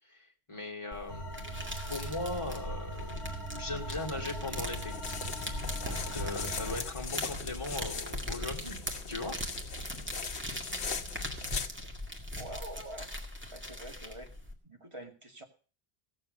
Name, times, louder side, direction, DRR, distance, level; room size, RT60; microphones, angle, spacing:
voice 1, 0.1-1.4 1.9-3.1 3.5-5.0 5.4-8.8 9.1-9.4 9.9-10.0, left 2 dB, 30° left, 1 dB, 2.5 m, -39 dB
sound 1, 0.9-14.5, left 1 dB, 10° right, 2.1 m, -40 dB
sound 2, 1.1-6.8, right 1 dB, 75° right, 3.8 m, -40 dB
sound 3, 4.7-11.7, left 5 dB, 85° left, 1.3 m, -40 dB
voice 2, 12.3-13.1 13.5-14.3 14.6-15.4, right 1 dB, 30° right, 1 dB, 2.4 m, -45 dB
16.5 x 7.5 x 6.6 m, 0.38 s
omnidirectional pair, 1.1 m